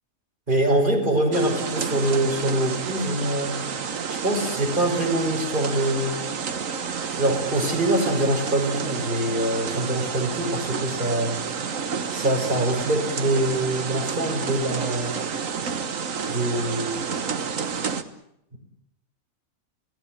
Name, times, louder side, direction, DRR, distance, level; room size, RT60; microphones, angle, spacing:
voice 1, 0.5-3.6 4.1-6.1 7.2-11.3 12.1-15.2 16.3-17.1, right 1 dB, 35° right, 1 dB, 6.4 m, -24 dB
sound 1, 1.3-18.0, right 6 dB, 70° right, 1.7 m, -30 dB
30.0 x 17.5 x 8.0 m, 0.74 s
omnidirectional pair, 1.4 m